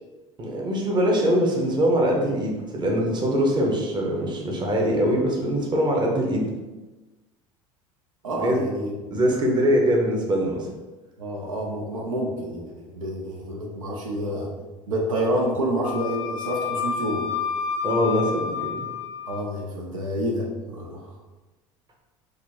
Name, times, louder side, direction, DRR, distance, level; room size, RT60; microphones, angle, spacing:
voice 1, 0.4-6.5 8.4-8.6 9.1-10.7 17.8-18.8, equal, 25° right, -1 dB, 0.9 m, -23 dB
voice 2, 8.2-8.9 11.2-14.5 14.9-17.2 19.3-21.1, equal, 75° right, -2 dB, 0.7 m, -28 dB
Wind instrument woodwind instrument, 15.8-19.5, left 6 dB, 55° left, 0.5 m, -29 dB
3.7 x 2.7 x 3.5 m, 1.1 s
figure-of-eight pair, 70°, 17 cm